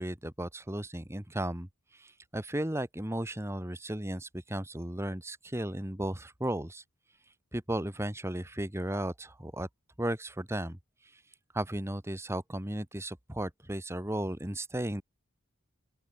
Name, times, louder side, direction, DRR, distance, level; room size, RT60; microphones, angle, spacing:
voice 1, 0.0-1.7 1.9-6.8 7.5-9.7 10.0-10.8 11.5-15.0, right 1 dB, 10° right, 1.3 m, -35 dB
open air
head